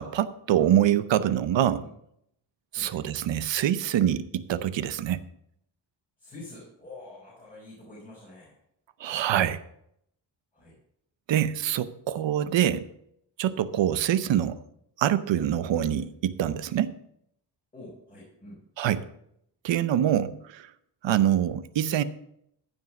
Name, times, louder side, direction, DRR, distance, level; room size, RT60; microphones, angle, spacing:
voice 1, 0.0-1.8 2.7-5.2 9.0-9.6 11.3-12.8 13.4-14.6 15.0-16.9 18.8-19.0 19.6-20.7 21.0-22.0, right 11 dB, 85° right, 14 dB, 0.8 m, -25 dB
voice 2, 2.7-3.0 6.2-8.6 10.5-10.8 12.6-12.7 17.7-18.6, left 2 dB, 20° left, -6 dB, 4.4 m, -46 dB
14.5 x 5.4 x 6.0 m, 0.74 s
wide cardioid pair, 170°, 43 cm